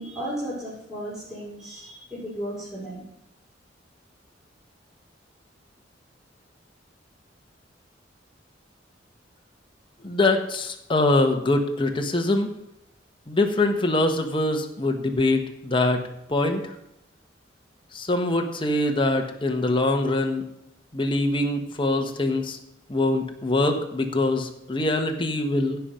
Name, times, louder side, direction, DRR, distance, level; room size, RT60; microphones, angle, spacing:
voice 1, 0.0-3.0, right 1 dB, 5° right, -9 dB, 3.2 m, -34 dB
voice 2, 10.0-12.5 13.3-16.0 16.3-16.6 17.9-20.4 20.9-22.6 22.9-25.8, left 2 dB, 30° left, 4 dB, 1.2 m, -23 dB
16.0 x 5.8 x 5.1 m, 0.84 s
head